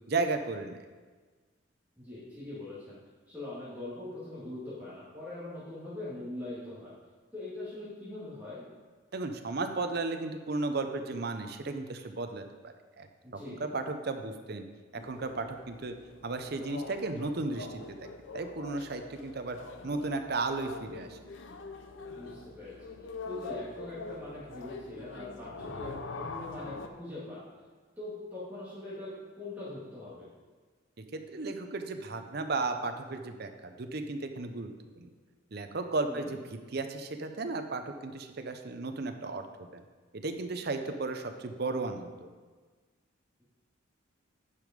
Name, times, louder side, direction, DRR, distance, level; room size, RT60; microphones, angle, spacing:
voice 1, 0.1-0.8 9.1-13.1 13.6-14.6 14.9-15.9 16.2-18.0 18.3-19.6 19.8-21.2 31.1-34.7 35.0-35.1 35.5-36.4 36.7-39.4 39.7-39.8 40.1-42.3, right 3 dB, 50° right, 7 dB, 0.6 m, -34 dB
voice 2, 2.0-3.0 3.3-6.9 7.3-8.6 13.2-13.6 22.1-22.9 23.3-27.4 28.0-29.1 29.4-30.3 36.0-36.4, left 2 dB, 10° right, -11 dB, 2.1 m, -42 dB
sound 1, 15.0-26.9, left 3 dB, 65° left, 0.6 m, -44 dB
9.7 x 5.1 x 5.1 m, 1.4 s
head